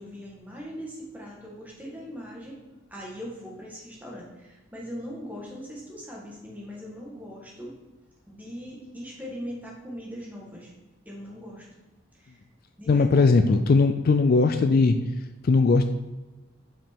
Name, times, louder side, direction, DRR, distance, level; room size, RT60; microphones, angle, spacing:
voice 1, 0.0-2.6 2.9-7.7 8.3-10.7 11.0-11.6 12.1-12.4 12.8-13.5, equal, 10° right, -3 dB, 1.6 m, -40 dB
voice 2, 12.9-15.0 15.4-15.9, left 3 dB, 45° left, 7 dB, 0.3 m, -19 dB
6.0 x 5.0 x 4.5 m, 1.1 s
head